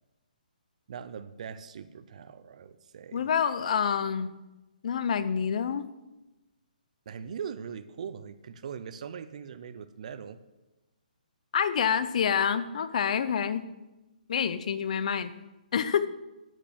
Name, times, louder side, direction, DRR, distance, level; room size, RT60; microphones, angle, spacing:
voice 1, 0.9-3.3 7.1-10.4, right 7 dB, 50° right, 12 dB, 0.6 m, -41 dB
voice 2, 3.1-4.3 4.8-5.8 11.5-13.7 14.3-15.3 15.7-16.1, left 7 dB, 50° left, 13 dB, 0.7 m, -27 dB
9.1 x 8.4 x 6.0 m, 1.1 s
hypercardioid pair, 165°, 5 cm